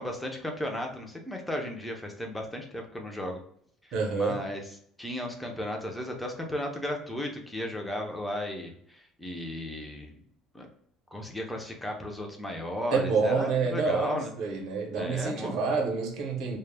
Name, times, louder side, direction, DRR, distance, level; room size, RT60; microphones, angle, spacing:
voice 1, 0.0-3.4 3.8-4.6 5.0-10.1 10.5-10.7 11.1-14.3 14.9-15.8, left 1 dB, 5° left, 0.4 m, -35 dB
voice 2, 3.9-4.4 12.9-16.6, right 4 dB, 55° right, 0.6 m, -28 dB
2.0 x 2.0 x 3.2 m
cardioid pair, 155°, 0 cm